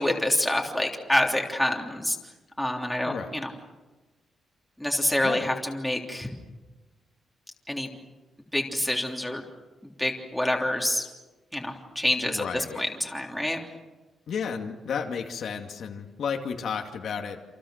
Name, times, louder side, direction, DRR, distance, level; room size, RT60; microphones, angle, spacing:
voice 1, 0.0-2.2 2.6-3.5 4.8-6.3 7.7-7.9 8.5-9.4 10.0-11.1 11.5-12.4 12.8-13.6, left 1 dB, 5° left, 0 dB, 3.4 m, -27 dB
voice 2, 12.2-12.8 14.3-17.4, left 6 dB, 65° left, 3 dB, 2.4 m, -32 dB
28.5 x 28.0 x 6.6 m, 1.2 s
wide cardioid pair, 150°, 0 cm